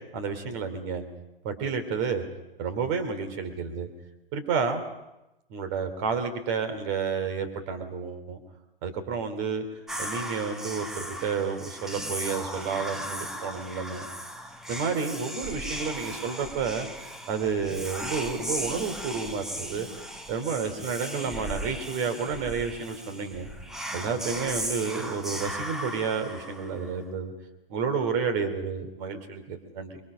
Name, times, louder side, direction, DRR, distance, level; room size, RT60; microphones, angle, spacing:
voice 1, 0.1-1.1 1.4-2.2 2.6-3.9 4.3-4.8 5.5-8.4 8.8-9.7 10.0-14.1 14.7-16.9 17.3-19.9 20.3-23.5 23.9-27.3 27.7-30.0, right 5 dB, 30° right, 6 dB, 2.8 m, -30 dB
Whispering, 9.9-27.0, equal, ahead, 0.8 m, -37 dB
27.5 x 22.5 x 5.5 m, 0.95 s
figure-of-eight pair, 120°, 29 cm